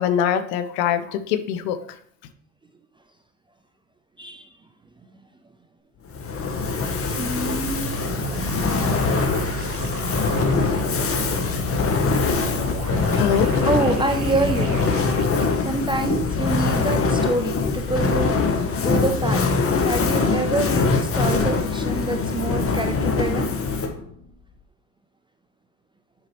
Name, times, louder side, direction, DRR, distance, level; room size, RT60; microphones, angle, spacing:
voice 1, 0.0-1.8 13.1-13.5, left 9 dB, 70° left, 11 dB, 0.8 m, -23 dB
voice 2, 4.2-4.5 7.1-7.9 13.7-14.8 15.6-18.4 18.8-19.4 19.8-23.5, right 2 dB, 10° right, 5 dB, 0.4 m, -26 dB
Fire, 6.1-24.1, left 4 dB, 25° left, 0.8 m, -23 dB
sound 1, 7.4-15.5, right 9 dB, 65° right, 0.8 m, -36 dB
7.4 x 4.8 x 2.9 m, 0.62 s
hypercardioid pair, 80°, 50 cm